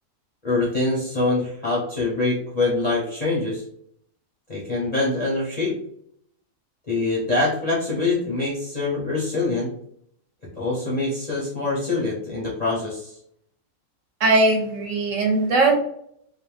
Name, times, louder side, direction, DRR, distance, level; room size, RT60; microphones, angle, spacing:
voice 1, 0.4-3.6 4.5-5.8 6.9-9.7 10.5-13.2, left 3 dB, 45° left, -7 dB, 0.5 m, -24 dB
voice 2, 14.2-15.8, right 2 dB, 65° right, 1 dB, 1.0 m, -19 dB
2.5 x 2.0 x 3.0 m, 0.67 s
omnidirectional pair, 1.5 m